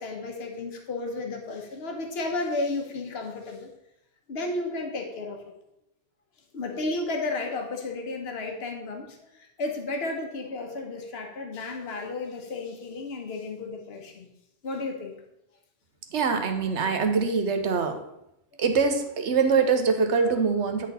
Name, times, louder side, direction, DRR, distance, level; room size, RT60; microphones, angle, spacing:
voice 1, 0.0-3.7 4.3-5.5 6.5-14.3 14.6-15.1, left 2 dB, 60° left, 3 dB, 1.3 m, -33 dB
voice 2, 16.1-18.0 18.6-20.9, right 5 dB, 75° right, 6 dB, 1.2 m, -24 dB
9.7 x 4.2 x 4.1 m, 0.84 s
omnidirectional pair, 1.2 m